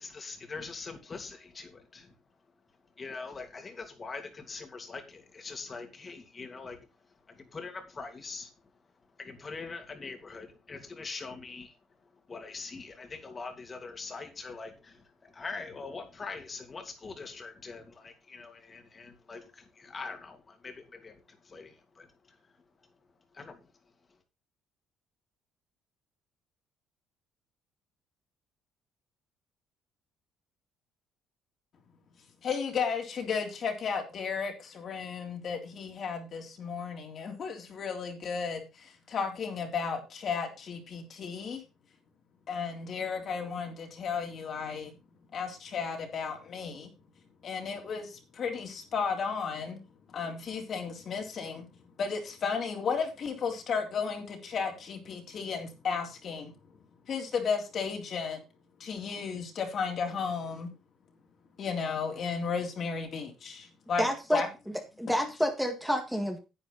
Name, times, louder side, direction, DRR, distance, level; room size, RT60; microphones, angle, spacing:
voice 1, 0.0-2.2 3.0-6.9 7.1-8.7 9.2-11.8 12.0-22.5 23.3-23.7, left 4 dB, 30° left, 2.8 m, -43 dB
voice 2, 32.4-41.6 42.5-44.9 45.3-46.9 47.4-49.8 50.1-51.7 52.0-56.5 57.1-58.4 58.8-60.7 61.6-64.1 64.3-64.5, left 5 dB, 50° left, 3.4 m, -34 dB
voice 3, 64.0-64.4 65.0-66.4, equal, ahead, 1.8 m, -28 dB
10.5 x 9.0 x 4.1 m
cardioid pair, 105°, 0 cm